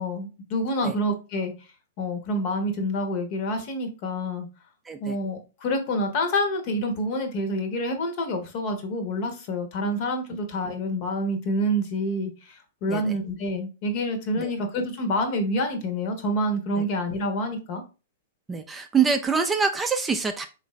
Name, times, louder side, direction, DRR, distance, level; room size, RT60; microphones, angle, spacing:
voice 1, 0.0-1.5 2.0-4.5 5.0-17.8, equal, 50° left, 1.0 m, -27 dB
voice 2, 18.5-20.5, right 5 dB, 15° right, 0.4 m, -25 dB
3.8 x 2.5 x 3.1 m
hypercardioid pair, 115°, 0 cm